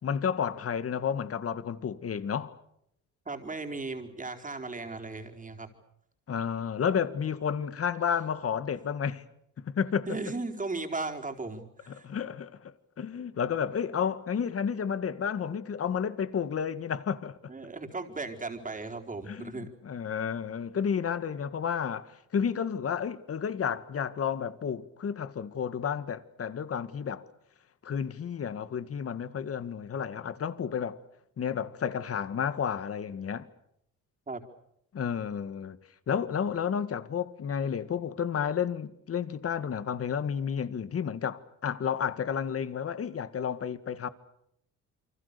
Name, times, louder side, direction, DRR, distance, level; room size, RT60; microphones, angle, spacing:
voice 1, 0.0-2.6 6.3-9.2 9.6-10.2 11.9-17.4 19.2-27.3 27.8-31.0 31.4-33.5 34.9-35.8 36.1-44.1, left 7 dB, 50° left, 1.9 m, -31 dB
voice 2, 3.3-5.7 10.1-12.1 15.5-15.6 17.5-19.7 34.3-34.4, right 3 dB, 25° right, 4.4 m, -36 dB
28.5 x 25.0 x 6.9 m
cardioid pair, 90°, 30 cm